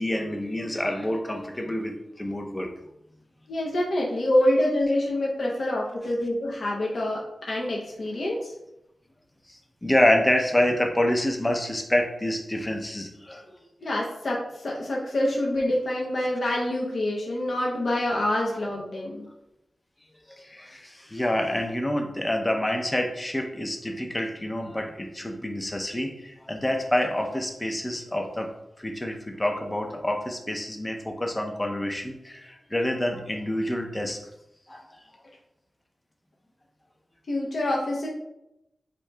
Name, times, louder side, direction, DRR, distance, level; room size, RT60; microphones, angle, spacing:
voice 1, 0.0-2.7 9.5-13.5 20.3-28.5 28.8-34.2 34.7-35.0, left 1 dB, 15° left, 3 dB, 0.6 m, -27 dB
voice 2, 3.5-8.5 13.8-19.3 37.3-38.1, left 1 dB, 55° left, -3 dB, 0.8 m, -26 dB
8.0 x 2.7 x 2.3 m, 0.86 s
wide cardioid pair, 120°, 0 cm